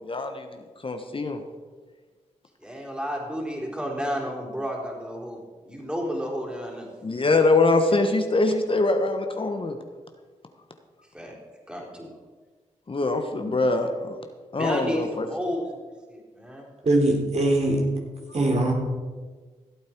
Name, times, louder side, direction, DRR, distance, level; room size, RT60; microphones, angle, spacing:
voice 1, 0.0-1.4 7.0-9.8 12.9-14.2 14.5-15.3, left 2 dB, 40° left, 6 dB, 1.3 m, -23 dB
voice 2, 2.6-6.9 11.1-11.4 11.7-12.1 14.6-15.8 16.1-16.7, equal, 5° right, -1 dB, 4.3 m, -32 dB
voice 3, 16.8-17.8 18.3-18.7, right 1 dB, 55° right, -1 dB, 3.7 m, -21 dB
16.0 x 8.4 x 4.7 m, 1.4 s
supercardioid pair, 45°, 13 cm